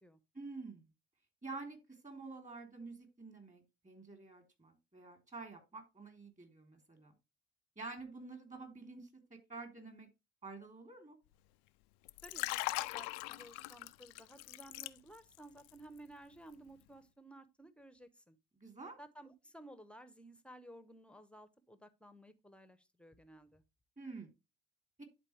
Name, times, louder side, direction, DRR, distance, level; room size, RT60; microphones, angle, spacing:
voice 1, 0.3-0.9 1.4-7.1 7.8-10.1 10.4-11.2 18.6-19.0 24.0-24.3 25.0-25.1, right 3 dB, 25° right, 3.2 m, -49 dB
Liquid, 12.1-15.4 15.7-16.0, left 21 dB, 80° left, 0.5 m, -40 dB
voice 2, 12.2-12.6 12.9-18.4 19.0-23.6, right 1 dB, 5° left, 1.0 m, -56 dB
11.0 x 4.1 x 3.2 m
hypercardioid pair, 65°, 31 cm